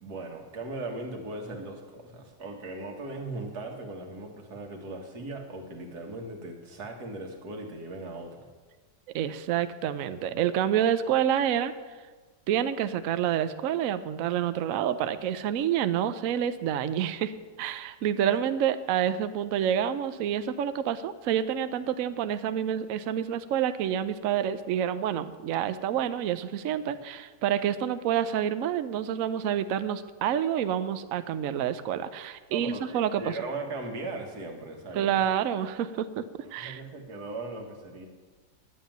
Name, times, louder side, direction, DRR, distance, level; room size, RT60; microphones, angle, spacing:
voice 1, 0.0-8.4 18.1-18.3 32.5-35.2 36.6-38.1, right 2 dB, 55° right, 3 dB, 2.0 m, -38 dB
voice 2, 9.1-11.7 12.5-33.4 34.9-36.3 36.5-36.8, right 9 dB, 80° right, 12 dB, 0.7 m, -28 dB
10.0 x 7.5 x 9.0 m, 1.4 s
omnidirectional pair, 2.0 m